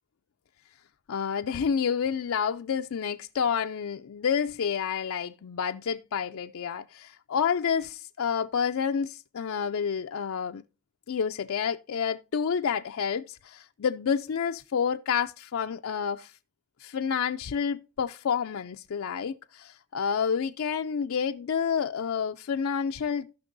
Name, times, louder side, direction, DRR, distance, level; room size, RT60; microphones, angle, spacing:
voice 1, 1.1-10.6 11.1-16.3 16.8-23.3, left 7 dB, 80° left, 0.4 m, -29 dB
16.5 x 6.0 x 2.6 m
head